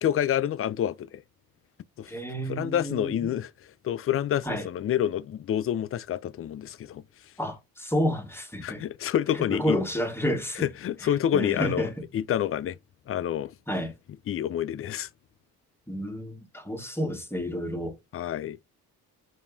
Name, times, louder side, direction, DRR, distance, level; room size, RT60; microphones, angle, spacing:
voice 1, 0.0-1.2 2.0-2.1 2.5-7.0 8.6-9.8 10.6-12.8 13.1-13.5 14.3-15.1 18.1-18.6, left 10 dB, 35° left, 0.4 m, -28 dB
voice 2, 2.1-3.2 4.4-4.7 7.4-8.8 9.3-10.7 11.0-12.0 13.7-13.9 15.9-18.0, equal, 5° left, 1.3 m, -30 dB
5.3 x 2.9 x 2.3 m
cardioid pair, 70°, 39 cm